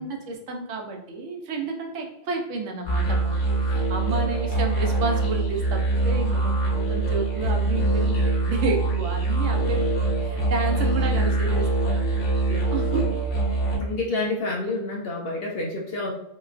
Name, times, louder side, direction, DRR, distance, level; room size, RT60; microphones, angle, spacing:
voice 1, 0.0-12.2 12.5-13.0, right 3 dB, 70° right, 2 dB, 0.9 m, -31 dB
sound 1, 2.8-13.8, right 3 dB, 85° left, 1.3 m, -23 dB
voice 2, 9.5-10.2 13.8-16.1, left 2 dB, 65° left, 0 dB, 0.6 m, -29 dB
3.8 x 2.3 x 2.4 m, 0.80 s
omnidirectional pair, 1.3 m